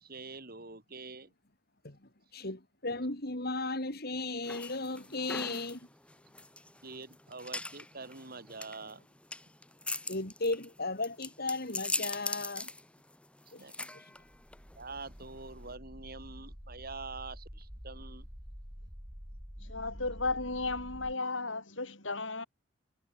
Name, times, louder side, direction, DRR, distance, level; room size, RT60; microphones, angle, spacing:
voice 1, 0.0-1.3 6.8-9.0 13.5-14.1 14.8-18.3, right 3 dB, 50° right, 4.8 m, -46 dB
voice 2, 1.8-5.9 10.1-12.7 13.5-14.0, left 2 dB, 55° left, 4.3 m, -36 dB
sound 1, 4.4-15.7, left 2 dB, 5° left, 1.2 m, -41 dB
sound 2, 14.2-21.1, equal, 10° right, 4.2 m, -48 dB
voice 3, 19.6-22.5, left 3 dB, 75° left, 7.8 m, -34 dB
head